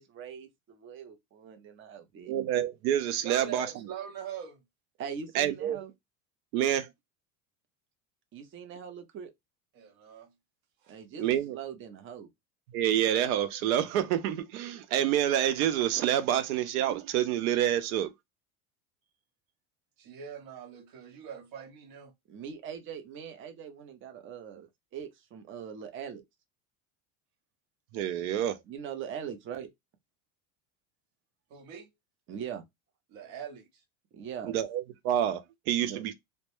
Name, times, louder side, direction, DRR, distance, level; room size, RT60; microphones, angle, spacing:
voice 1, 0.0-2.3 5.0-5.9 8.3-9.3 10.9-12.3 22.3-26.2 28.7-29.7 32.3-32.6 34.1-34.6 35.8-36.0, right 8 dB, 30° right, 0.5 m, -41 dB
voice 2, 2.3-3.7 5.3-5.8 6.5-6.9 11.2-11.6 12.7-18.1 27.9-28.6 34.4-36.2, right 11 dB, 85° right, 0.5 m, -28 dB
voice 3, 3.2-4.6 9.7-10.3 10.8-11.0 20.0-22.1 31.5-31.9 33.1-33.8, right 8 dB, 55° right, 0.9 m, -43 dB
2.1 x 2.1 x 2.9 m
supercardioid pair, 125°, 41 cm